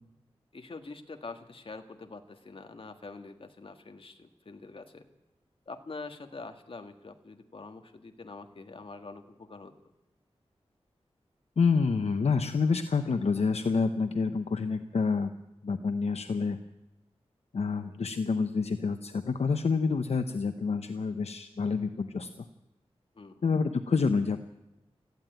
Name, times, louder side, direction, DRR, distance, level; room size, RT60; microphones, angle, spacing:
voice 1, 0.5-5.1 5.7-9.7 23.1-23.4, left 3 dB, 55° left, 6 dB, 1.7 m, -45 dB
voice 2, 11.6-15.3 15.6-16.6 17.5-22.3 23.4-24.4, left 4 dB, 70° left, 9 dB, 0.9 m, -28 dB
20.0 x 15.0 x 9.2 m, 0.96 s
wide cardioid pair, 100°, 11 cm